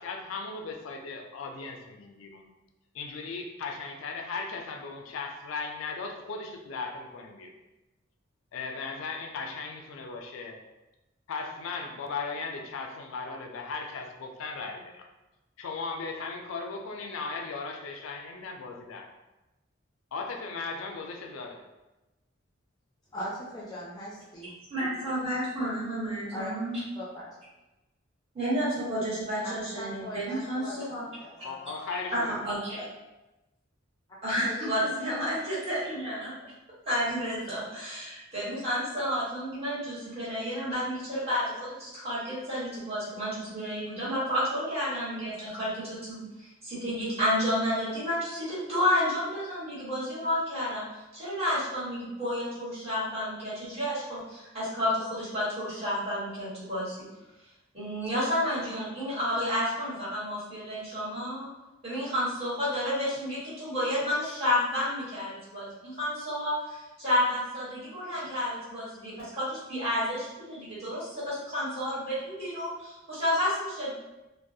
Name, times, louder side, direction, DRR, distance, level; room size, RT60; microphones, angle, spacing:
voice 1, 0.0-2.4 2.9-7.5 8.5-10.6 11.3-15.1 15.6-19.1 20.1-21.6 31.4-32.4, left 4 dB, 90° left, 3 dB, 0.3 m, -37 dB
voice 2, 23.1-24.5 26.3-26.5 26.9-27.3 29.4-30.8 31.0-31.7 34.4-35.2, equal, 20° left, -6 dB, 0.4 m, -40 dB
voice 3, 24.7-26.8 28.3-31.1 32.1-32.8 34.2-36.3 36.9-50.8 51.1-57.1 57.7-61.5 61.8-73.9, equal, 30° right, -11 dB, 1.2 m, -31 dB
2.3 x 2.0 x 2.6 m, 1.0 s
head